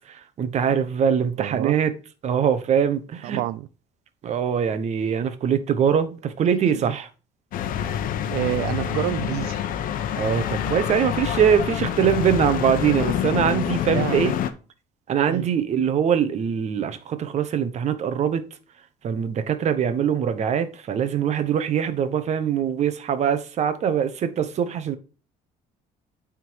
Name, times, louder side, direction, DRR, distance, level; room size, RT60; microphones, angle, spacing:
voice 1, 0.1-1.9 2.2-3.4 4.2-7.1 10.2-14.3 15.1-18.4 19.0-25.0, right 8 dB, 45° right, 1.0 m, -23 dB
voice 2, 1.2-1.8 3.2-3.7 6.7-7.0 8.3-9.6 13.9-14.4 15.3-15.5 19.9-20.0, right 15 dB, 90° right, 0.5 m, -28 dB
sound 1, 7.5-14.5, left 10 dB, 65° left, 0.8 m, -27 dB
9.0 x 3.8 x 4.7 m
cardioid pair, 130°, 16 cm